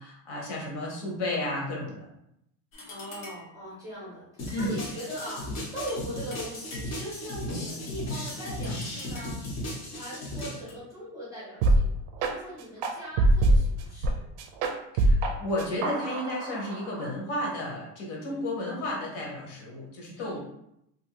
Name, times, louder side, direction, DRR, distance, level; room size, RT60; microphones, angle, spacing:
voice 1, 0.0-2.1 4.5-4.7 14.9-20.4, left 1 dB, 60° left, -2 dB, 1.0 m, -32 dB
sound 1, 2.7-3.6 4.5-6.1 6.3-7.2 8.1-9.5 10.4-10.8, left 2 dB, 90° left, 1.0 m, -47 dB
voice 2, 2.9-9.4 9.9-11.9 12.2-14.2 18.2-18.4 20.1-20.4, equal, 10° right, -8 dB, 0.6 m, -40 dB
sound 2, 4.4-10.6, left 1 dB, 35° left, 0.7 m, -36 dB
sound 3, 11.6-11.8 12.2-12.3 12.8-14.1 14.4-15.3 15.6-17.1, right 2 dB, 65° right, 0.5 m, -23 dB
2.6 x 2.6 x 2.9 m, 0.79 s
cardioid pair, 180°, 44 cm